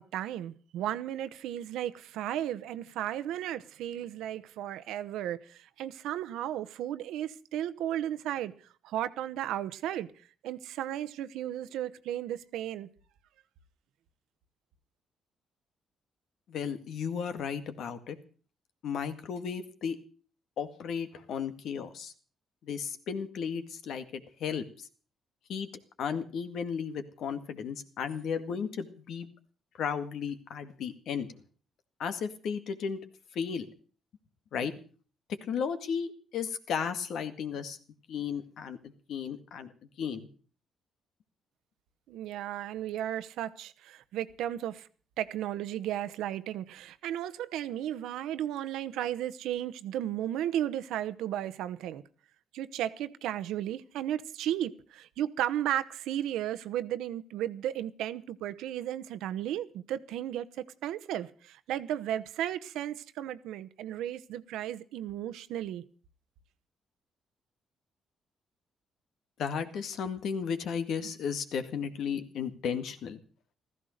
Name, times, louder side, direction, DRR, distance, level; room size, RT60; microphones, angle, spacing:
voice 1, 0.0-8.5 8.8-10.1 10.4-12.9 42.1-44.9 45.2-52.0 52.5-65.8, right 11 dB, 90° right, 1.0 m, -34 dB
voice 2, 16.5-18.2 18.8-20.0 20.6-22.1 22.6-24.9 25.5-25.7 26.0-29.3 29.8-31.3 32.0-33.0 33.3-33.7 34.5-34.7 35.4-37.8 38.1-38.8 39.1-39.7 40.0-40.3 69.4-73.2, left 7 dB, 75° left, 1.9 m, -34 dB
15.5 x 14.5 x 6.5 m
cardioid pair, 90°, 0 cm